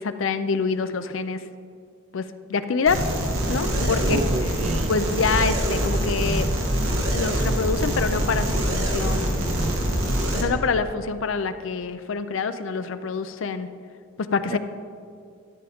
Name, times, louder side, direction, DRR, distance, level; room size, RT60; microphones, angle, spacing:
voice 1, 0.0-1.4 2.1-3.0 3.5-4.6 4.9-6.6 7.1-9.5 10.3-13.7 14.2-14.6, left 5 dB, 65° left, 11 dB, 0.5 m, -26 dB
sound 1, 2.9-10.4, equal, 85° right, 1.8 m, -24 dB
voice 2, 4.0-4.9 14.5-14.6, right 3 dB, 35° right, 10 dB, 0.4 m, -30 dB
13.5 x 9.0 x 3.5 m, 2.2 s
head